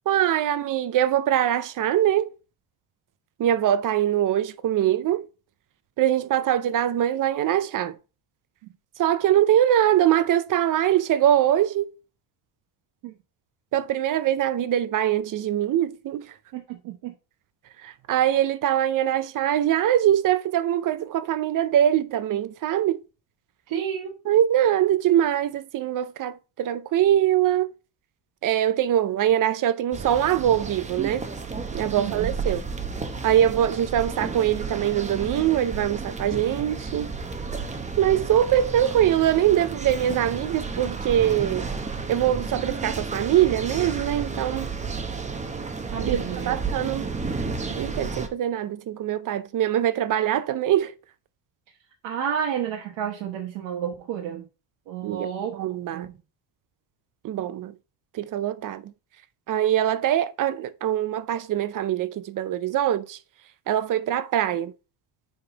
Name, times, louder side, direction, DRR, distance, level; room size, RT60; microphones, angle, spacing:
voice 1, 0.1-2.3 3.4-5.3 6.0-8.0 9.0-11.9 13.7-16.3 17.8-23.0 24.2-27.7 28.4-31.2 31.7-32.6 33.2-37.1 38.0-41.7 42.1-44.7 46.0-47.1 47.7-50.9 55.0-56.1 57.2-57.7 58.1-58.9 59.5-63.2 63.7-64.7, right 11 dB, 45° right, 0.6 m, -23 dB
voice 2, 16.5-17.1 23.7-24.1 32.0-32.3 45.9-46.6 52.0-54.4 54.9-55.6 55.9-56.1, right 8 dB, 75° right, 1.3 m, -30 dB
sound 1, 29.9-48.3, right 4 dB, 15° right, 0.8 m, -32 dB
6.9 x 3.7 x 4.9 m
cardioid pair, 125°, 46 cm